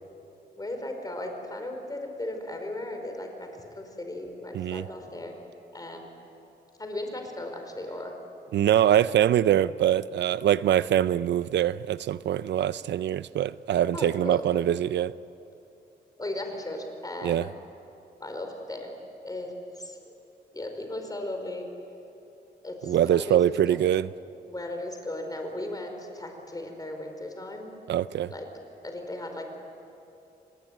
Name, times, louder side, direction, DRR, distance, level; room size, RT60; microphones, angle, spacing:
voice 1, 0.6-3.5 3.8-5.3 5.7-6.1 6.8-8.2 13.9-14.4 16.2-17.5 18.2-18.9 19.2-20.1 20.5-21.6 22.6-23.8 24.5-27.7 28.3-28.5 28.8-29.6, left 1 dB, 20° left, 4 dB, 4.8 m, -36 dB
voice 2, 4.5-4.8 8.5-15.1 17.2-17.4 22.8-24.1 27.9-28.3, right 11 dB, 85° right, 17 dB, 0.6 m, -23 dB
26.0 x 20.5 x 9.3 m, 2.8 s
cardioid pair, 95°, 18 cm